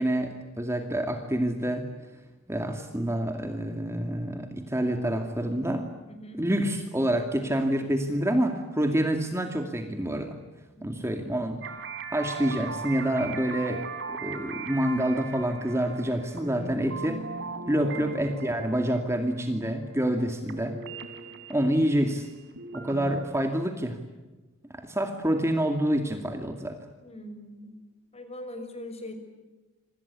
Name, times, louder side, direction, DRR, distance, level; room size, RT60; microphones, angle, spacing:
voice 1, 0.0-1.8 2.5-5.9 6.4-10.4 10.8-11.6 12.1-17.3 17.7-20.8 21.5-22.3 22.7-24.0 24.7-26.8, right 1 dB, 15° right, 4 dB, 2.4 m, -27 dB
voice 2, 6.1-6.4 10.8-11.2 17.9-18.1 27.0-27.8 28.1-29.1, left 1 dB, 30° left, 8 dB, 5.7 m, -41 dB
sound 1, 11.6-20.2 20.5-23.2, right 4 dB, 60° right, 4.0 m, -39 dB
27.5 x 26.0 x 8.4 m, 1.2 s
head